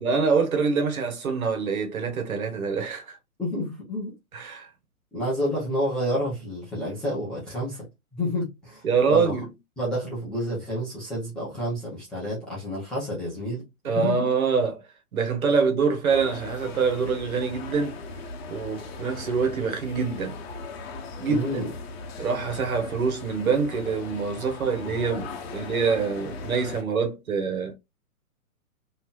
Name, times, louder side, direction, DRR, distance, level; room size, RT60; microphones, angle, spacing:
voice 1, 0.0-3.2 4.3-4.7 8.8-9.5 13.8-18.0 18.5-20.4 21.2-21.5 22.2-27.7, right 5 dB, 70° right, 1.3 m, -25 dB
voice 2, 3.4-4.1 5.1-7.9 8.1-9.4 9.8-13.6 13.9-14.3 21.3-21.7, equal, ahead, 0.4 m, -29 dB
sound 1, 16.1-26.8, left 3 dB, 45° left, 0.8 m, -38 dB
3.3 x 2.8 x 2.3 m
hypercardioid pair, 130°, 43 cm